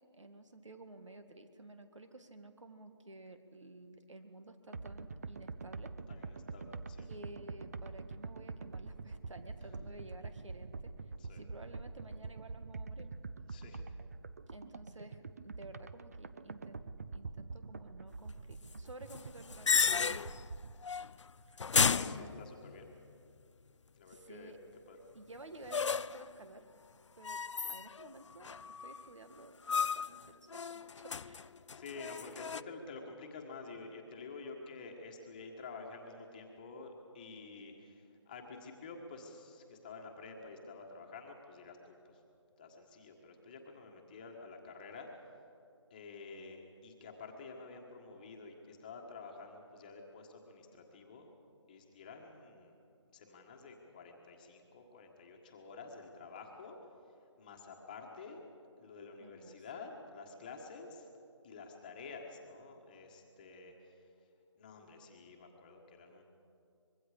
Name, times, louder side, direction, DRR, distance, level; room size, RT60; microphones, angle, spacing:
voice 1, 0.1-6.0 7.1-13.1 14.5-19.9 22.0-22.6 24.1-24.6 25.1-26.7 27.2-27.4 27.7-31.5 59.2-59.9, right 2 dB, 90° right, 8 dB, 2.0 m, -53 dB
sound 1, 4.7-20.7, right 4 dB, 30° right, 0.5 m, -46 dB
voice 2, 6.1-7.1 9.8-9.9 11.2-11.4 13.5-13.8 21.8-22.9 23.9-24.5 24.9-25.0 31.7-42.2 42.6-45.1 45.9-51.3 51.7-52.8 53.1-56.8 57.4-58.4 58.8-61.1 61.4-64.1 64.6-66.2, left 4 dB, 15° left, 2 dB, 1.4 m, -50 dB
sound 2, 19.1-20.5 20.8-21.2 21.6-22.9 25.7-26.3 27.2-28.1 28.4-29.1 29.7-30.2 30.5-32.6, left 5 dB, 80° left, 0.5 m, -33 dB
24.0 x 22.0 x 5.0 m, 2.5 s
figure-of-eight pair, 170°, 15 cm